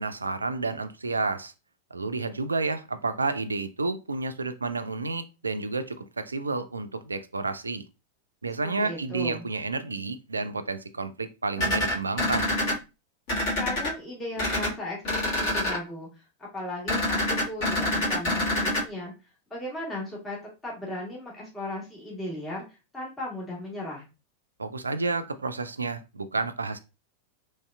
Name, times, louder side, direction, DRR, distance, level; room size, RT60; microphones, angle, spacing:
voice 1, 0.0-1.5 1.9-7.8 8.4-12.5 24.6-26.8, right 3 dB, 75° right, 0.3 m, -30 dB
voice 2, 8.6-9.5 13.6-16.1 16.4-19.1 19.5-20.4 20.6-22.6 22.9-24.0, left 1 dB, 15° left, 1.3 m, -36 dB
sound 1, 11.6-12.7 13.3-13.9 14.4-14.7 15.0-15.8 16.9-18.8, left 1 dB, 50° left, 1.5 m, -26 dB
3.1 x 2.7 x 2.3 m
figure-of-eight pair, 90°, 0 cm